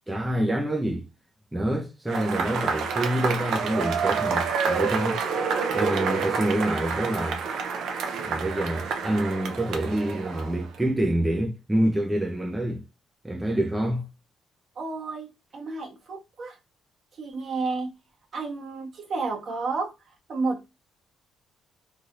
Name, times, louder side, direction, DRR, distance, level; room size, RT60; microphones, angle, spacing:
voice 1, 0.1-1.1 1.5-5.2 5.7-7.4 8.2-12.8 13.2-14.0, right 1 dB, 10° right, 0.6 m, -27 dB
Cheering / Applause / Crowd, 2.1-10.8, right 5 dB, 75° right, 0.7 m, -28 dB
voice 2, 14.8-15.3 15.5-16.6 17.2-17.9 18.3-19.9 20.3-20.7, right 3 dB, 55° right, 1.2 m, -31 dB
3.2 x 2.7 x 2.5 m
cardioid pair, 90°, 0 cm